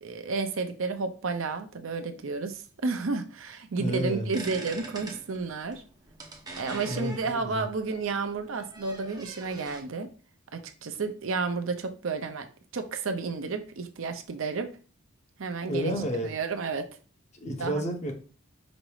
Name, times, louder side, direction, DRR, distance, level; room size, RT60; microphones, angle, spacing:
voice 1, 0.0-5.8 6.6-10.1 10.5-12.5 12.7-14.7 15.4-15.9 16.2-16.8 17.6-17.8, right 4 dB, 70° right, 6 dB, 0.6 m, -31 dB
voice 2, 3.8-4.3 6.8-7.7 15.6-16.3 17.3-18.1, equal, 35° left, 2 dB, 0.9 m, -31 dB
sound 1, 4.3-9.8, right 2 dB, 20° right, 0.7 m, -43 dB
5.2 x 2.0 x 4.6 m, 0.37 s
head